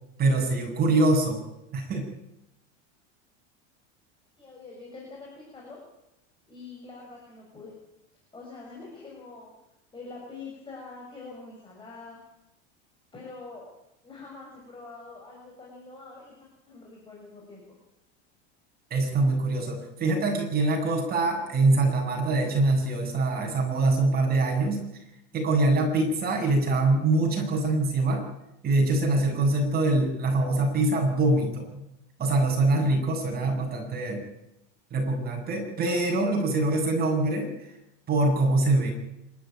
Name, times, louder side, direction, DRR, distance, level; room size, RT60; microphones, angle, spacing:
voice 1, 0.2-1.4 1.7-2.0 18.9-24.8 25.3-28.2 28.6-31.8 32.2-34.2 34.9-37.5 38.1-38.9, right 2 dB, 25° right, 2 dB, 7.7 m, -24 dB
voice 2, 4.4-5.8 6.5-7.7 8.3-9.5 9.9-12.2 13.1-13.7 14.0-16.3 16.7-17.8 36.3-36.5, left 3 dB, 15° left, -3 dB, 6.6 m, -44 dB
26.0 x 13.0 x 9.2 m, 0.85 s
supercardioid pair, 140°, 34 cm